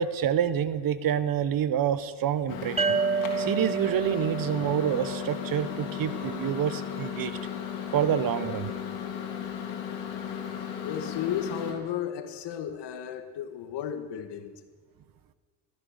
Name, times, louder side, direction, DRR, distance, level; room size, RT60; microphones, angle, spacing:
voice 1, 0.0-3.0 3.4-7.3 7.9-8.7, right 9 dB, 45° right, 15 dB, 1.0 m, -27 dB
Microwave oven, 2.5-11.7, left 8 dB, 80° left, 3.1 m, -35 dB
sound 1, 2.8-6.2, right 5 dB, 15° right, 0.7 m, -31 dB
voice 2, 10.8-14.6, left 9 dB, 55° left, 8 dB, 1.9 m, -34 dB
14.5 x 14.0 x 6.7 m, 1.5 s
supercardioid pair, 85°, 49 cm